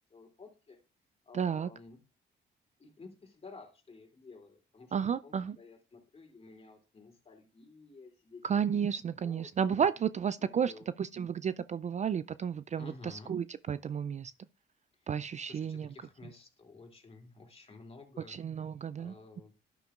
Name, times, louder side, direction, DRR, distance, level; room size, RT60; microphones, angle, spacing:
voice 1, 0.1-0.8 1.2-2.0 2.8-4.9 5.2-8.6 9.2-9.5 10.4-10.9 12.8-13.3 15.0-15.1 15.4-18.4 19.0-19.5, left 3 dB, 30° left, 3.0 m, -53 dB
voice 2, 1.3-1.7 4.9-5.6 8.4-14.3 15.1-15.9 18.3-19.1, right 7 dB, 35° right, 0.4 m, -32 dB
12.0 x 9.2 x 2.4 m
cardioid pair, 90°, 20 cm